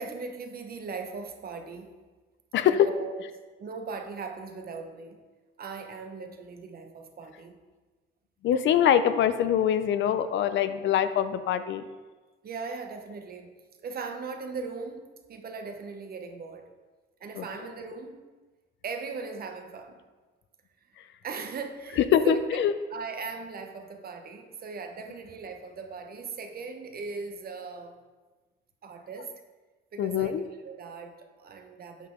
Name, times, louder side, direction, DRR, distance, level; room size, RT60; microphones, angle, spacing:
voice 1, 0.0-1.9 2.7-3.2 3.6-5.2 5.6-7.6 12.4-13.5 13.8-15.0 15.3-16.7 17.2-18.2 18.8-20.0 21.2-22.6 22.9-28.0 28.8-29.3 29.9-32.1, right 4 dB, 50° right, 6 dB, 0.9 m, -39 dB
voice 2, 2.5-2.9 8.4-11.8 17.4-17.5 21.0-21.1 22.1-22.7 30.0-30.4, left 9 dB, 70° left, 11 dB, 0.5 m, -24 dB
8.1 x 5.9 x 3.7 m, 1.3 s
cardioid pair, 90°, 20 cm